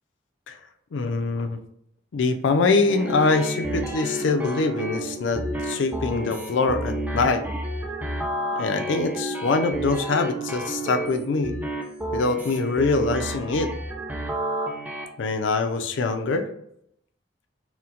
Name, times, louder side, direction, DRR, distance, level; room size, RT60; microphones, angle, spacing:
voice 1, 0.9-1.6 2.1-7.4 8.5-11.5 12.1-13.7 15.2-16.5, left 3 dB, 85° left, 6 dB, 0.5 m, -24 dB
sound 1, 2.9-15.0, right 1 dB, 10° right, 0.4 m, -30 dB
4.2 x 2.1 x 2.4 m, 0.72 s
head